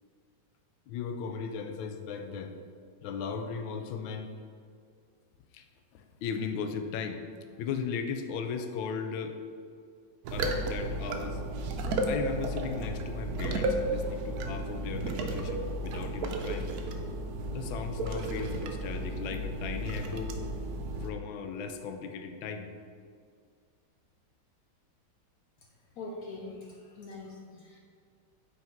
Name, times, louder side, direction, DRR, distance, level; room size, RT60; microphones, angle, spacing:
voice 1, 0.9-2.5 3.0-4.3 5.5-5.7 5.9-7.2 7.5-9.4 10.3-11.4 12.1-16.7 17.5-20.3 21.0-22.7, left 6 dB, 85° left, 6 dB, 1.3 m, -37 dB
sound 1, 10.2-21.1, right 1 dB, 70° right, 0.9 m, -33 dB
voice 2, 26.0-27.8, left 2 dB, 70° left, -1 dB, 0.9 m, -43 dB
5.7 x 4.1 x 4.4 m, 2.2 s
omnidirectional pair, 2.1 m